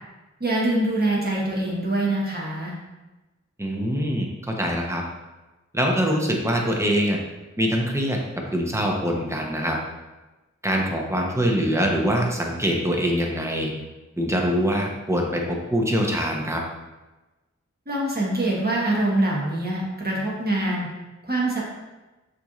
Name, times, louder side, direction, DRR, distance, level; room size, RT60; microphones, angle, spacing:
voice 1, 0.4-2.7 17.9-20.9 21.2-21.6, right 1 dB, 35° right, -5 dB, 1.3 m, -24 dB
voice 2, 3.6-5.0 5.7-7.2 7.6-8.2 8.5-9.8 10.6-13.7 14.2-16.6, equal, 10° right, 0 dB, 0.8 m, -24 dB
6.7 x 3.1 x 2.5 m, 1.1 s
wide cardioid pair, 40°, 29 cm